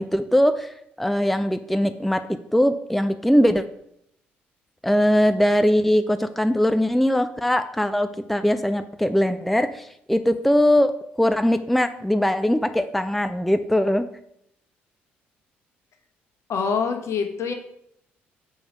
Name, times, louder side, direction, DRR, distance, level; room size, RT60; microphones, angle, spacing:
voice 1, 0.0-3.6 4.8-10.9 11.2-14.1, equal, ahead, 9 dB, 0.5 m, -21 dB
voice 2, 16.5-17.5, left 5 dB, 55° left, 5 dB, 1.2 m, -25 dB
6.9 x 5.0 x 5.1 m, 0.74 s
figure-of-eight pair, 50°, 6 cm